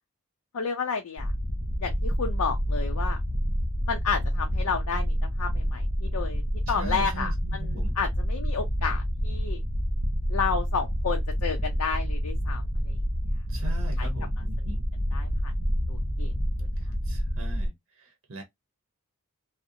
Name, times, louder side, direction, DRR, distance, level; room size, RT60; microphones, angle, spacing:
voice 1, 0.5-1.3 1.8-3.2 3.9-6.4 6.7-9.6 10.3-13.0 14.0-14.1 15.1-15.5 15.9-16.3, left 5 dB, 90° left, 0.5 m, -31 dB
sound 1, 1.2-17.7, equal, 30° left, 0.6 m, -28 dB
voice 2, 6.7-8.0 13.5-14.8 17.1-18.4, right 2 dB, 65° right, 0.7 m, -40 dB
2.5 x 2.0 x 2.6 m
head